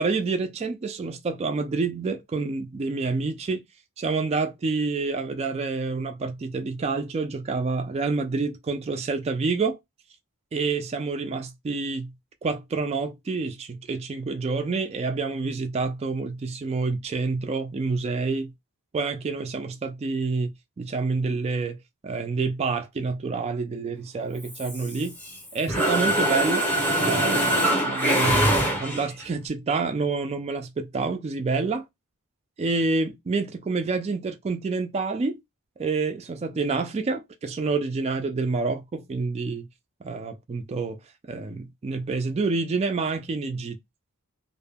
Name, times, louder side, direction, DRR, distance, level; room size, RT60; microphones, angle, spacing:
voice 1, 0.0-3.6 4.0-9.8 10.5-12.1 12.4-18.5 18.9-20.5 20.8-25.2 25.5-26.7 26.9-31.9 32.6-35.4 35.8-39.7 40.0-41.0 41.3-43.8, right 4 dB, 30° right, 0.3 m, -28 dB
Mechanisms, 24.4-25.4 25.7-29.2, right 1 dB, 10° left, 0.6 m, -23 dB
2.2 x 2.1 x 3.3 m
head